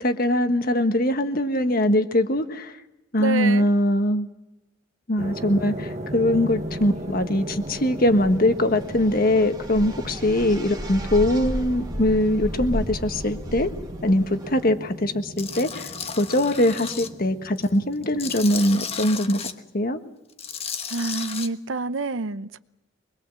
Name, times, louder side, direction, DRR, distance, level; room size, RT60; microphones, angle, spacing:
voice 1, 0.0-2.8 3.1-4.3 5.1-13.7 14.0-19.4 19.7-20.0, left 1 dB, 50° left, 8 dB, 1.5 m, -22 dB
voice 2, 3.2-3.7 20.9-22.6, right 4 dB, 80° right, 14 dB, 0.8 m, -27 dB
sound 1, 5.2-19.1, equal, 35° right, 1.3 m, -37 dB
sound 2, 6.3-14.7, equal, 20° right, 2.0 m, -35 dB
Tools, 15.4-17.1 17.6-19.5 20.3-21.5, left 7 dB, 30° left, 1.2 m, -34 dB
24.5 x 21.0 x 7.6 m, 0.95 s
head